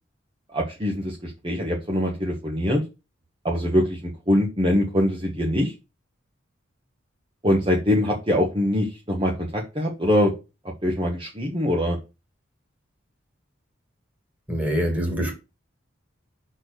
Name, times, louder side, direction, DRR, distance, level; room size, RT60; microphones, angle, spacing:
voice 1, 0.5-2.8 3.4-5.7 7.4-10.3 10.8-12.0, equal, 25° right, 1.3 m, -23 dB
voice 2, 14.5-15.3, equal, 10° right, 2.2 m, -24 dB
6.0 x 4.4 x 6.5 m
head